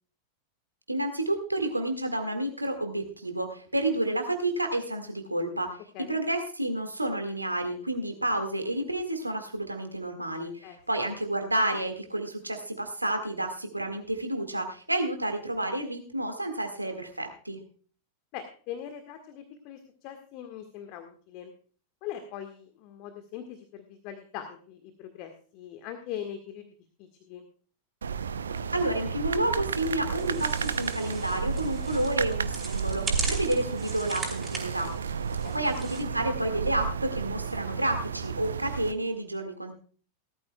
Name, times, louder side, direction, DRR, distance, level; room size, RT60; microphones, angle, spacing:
voice 1, 0.9-5.8 6.1-17.6 28.7-34.9 35.5-39.7, right 1 dB, 85° right, 5 dB, 1.9 m, -30 dB
voice 2, 18.3-21.5 22.0-26.6 27.0-27.5 35.4-35.6, left 10 dB, 45° left, 6 dB, 1.6 m, -41 dB
sound 1, 28.0-38.9, right 6 dB, 70° right, 0.6 m, -32 dB
sound 2, 29.6-36.0, right 4 dB, 20° right, 4.6 m, -40 dB
18.0 x 13.5 x 2.3 m, 0.42 s
figure-of-eight pair, 90°, 0 cm